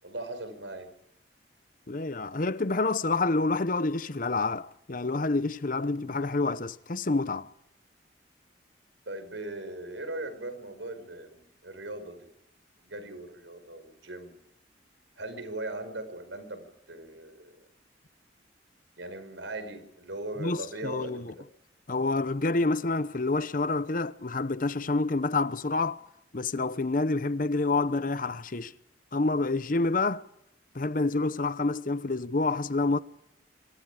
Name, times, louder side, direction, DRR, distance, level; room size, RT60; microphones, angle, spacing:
voice 1, 0.0-0.9 9.1-12.3 12.8-14.3 15.2-17.6 19.0-21.4, right 2 dB, 85° right, 5.2 m, -39 dB
voice 2, 1.9-7.5 20.4-21.3 21.9-26.0 26.3-28.7 29.1-30.2 30.7-33.0, left 3 dB, 45° left, 0.9 m, -28 dB
26.0 x 24.5 x 5.0 m
head